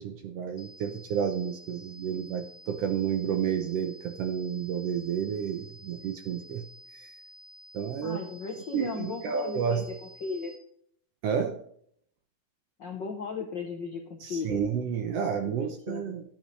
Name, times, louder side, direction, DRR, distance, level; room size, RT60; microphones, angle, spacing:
voice 1, 0.0-6.7 6.9-7.1 7.7-8.2 8.7-9.8 11.2-11.6 14.2-16.2, right 7 dB, 70° right, 6 dB, 1.6 m, -30 dB
sound 1, 0.6-10.6, equal, 30° left, 1.0 m, -51 dB
voice 2, 8.0-9.8 10.2-10.5 12.8-14.6 15.3-16.1, left 5 dB, 70° left, 3 dB, 1.1 m, -36 dB
12.5 x 8.2 x 3.2 m, 0.65 s
omnidirectional pair, 3.4 m